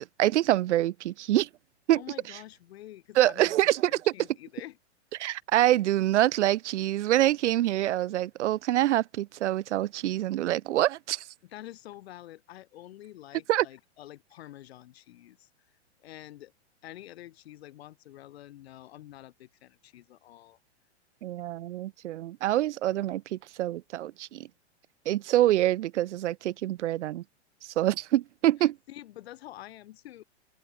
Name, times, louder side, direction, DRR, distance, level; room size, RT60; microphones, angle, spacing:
voice 1, 0.0-1.5 1.9-2.0 3.2-4.1 5.2-11.2 13.5-13.7 21.2-24.5 25.1-27.2 27.8-28.8, right 14 dB, 80° right, 0.5 m, -26 dB
voice 2, 1.9-4.8 11.4-15.5 16.0-16.5 16.8-20.6 28.6-30.2, left 14 dB, 60° left, 2.9 m, -47 dB
open air
hypercardioid pair, 135°, 35 cm